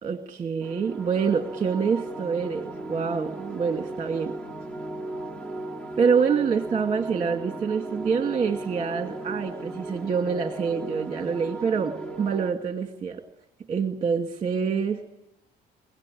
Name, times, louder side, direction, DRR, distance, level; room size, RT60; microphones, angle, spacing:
voice 1, 0.0-4.3 6.0-13.2 13.7-15.0, right 6 dB, 35° right, 5 dB, 2.1 m, -26 dB
sound 1, 0.6-12.5, right 2 dB, 10° left, 2.2 m, -37 dB
24.5 x 17.0 x 10.0 m, 0.91 s
cardioid pair, 110°, 17 cm